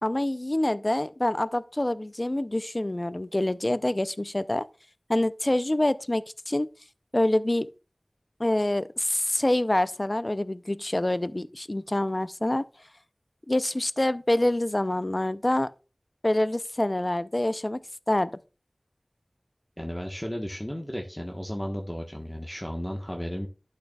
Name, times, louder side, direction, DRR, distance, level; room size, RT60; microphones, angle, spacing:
voice 1, 0.0-4.7 5.1-6.7 7.1-7.7 8.4-12.6 13.5-15.7 16.2-17.8 18.1-18.3, left 1 dB, 40° left, 0.5 m, -26 dB
voice 2, 19.8-23.5, equal, 10° left, 1.2 m, -34 dB
12.0 x 6.6 x 2.3 m
wide cardioid pair, 45°, 0 cm